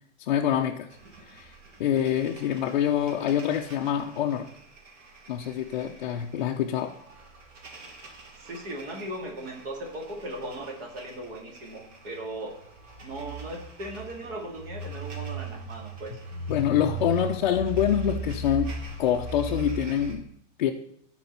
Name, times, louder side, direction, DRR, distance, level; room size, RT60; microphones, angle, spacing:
voice 1, 0.2-0.9 1.3-1.5 1.8-4.5 5.3-7.0 16.5-18.7 19.0-20.3 20.6-20.7, left 10 dB, 40° left, 1 dB, 0.4 m, -26 dB
sound 1, 0.9-20.1, right 4 dB, 80° right, 2.5 m, -39 dB
voice 2, 8.4-12.6 13.0-16.2, right 1 dB, 50° right, 1 dB, 2.1 m, -38 dB
13.5 x 4.5 x 4.2 m, 0.72 s
supercardioid pair, 180°, 37 cm